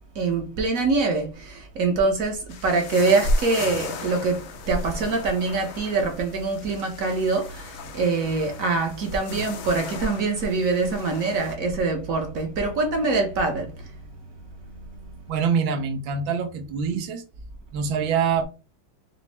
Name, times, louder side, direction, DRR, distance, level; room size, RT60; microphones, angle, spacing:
voice 1, 0.1-13.9, right 3 dB, 55° right, 1.0 m, -24 dB
sound 1, 2.5-11.6, left 6 dB, 75° left, 0.7 m, -39 dB
voice 2, 15.3-17.2 17.7-18.5, right 6 dB, 80° right, 1.5 m, -25 dB
6.1 x 2.0 x 3.3 m
omnidirectional pair, 2.2 m